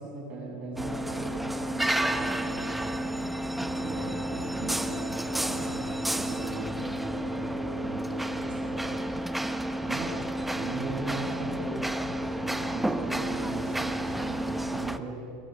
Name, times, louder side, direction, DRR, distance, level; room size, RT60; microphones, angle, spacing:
voice 1, 0.0-3.0 3.6-9.1 9.8-10.2 10.5-15.2, right 3 dB, 40° right, -1 dB, 7.9 m, -39 dB
sound 1, 0.8-15.0, right 1 dB, 5° right, 1.0 m, -31 dB
30.0 x 22.5 x 6.7 m, 2.9 s
supercardioid pair, 130°, 3 cm